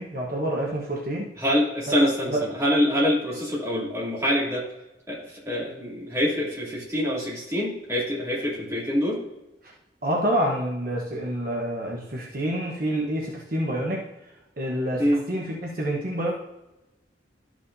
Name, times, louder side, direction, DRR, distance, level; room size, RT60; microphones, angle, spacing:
voice 1, 0.0-1.3 2.3-2.4 10.0-14.0 14.6-16.3, right 1 dB, 50° right, -2 dB, 1.1 m, -27 dB
voice 2, 1.4-4.6 5.1-9.2 15.0-15.2, equal, 15° right, -6 dB, 2.8 m, -25 dB
12.5 x 6.3 x 2.7 m, 0.97 s
head